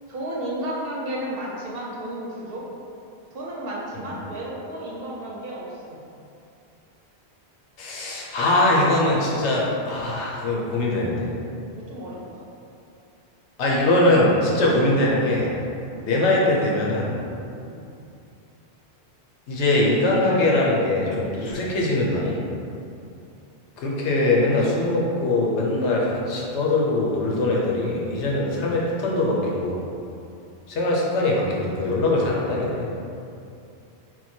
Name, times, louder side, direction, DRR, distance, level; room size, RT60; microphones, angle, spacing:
voice 1, 0.1-2.7 3.3-6.0 11.7-12.4 15.9-16.1 17.6-17.8, right 1 dB, 65° right, -4 dB, 0.8 m, -33 dB
voice 2, 7.8-11.3 13.6-15.6 16.0-17.2 19.5-22.4 23.8-29.8 30.7-32.9, left 2 dB, 85° left, -3 dB, 1.0 m, -22 dB
4.4 x 2.2 x 4.2 m, 2.6 s
omnidirectional pair, 1.1 m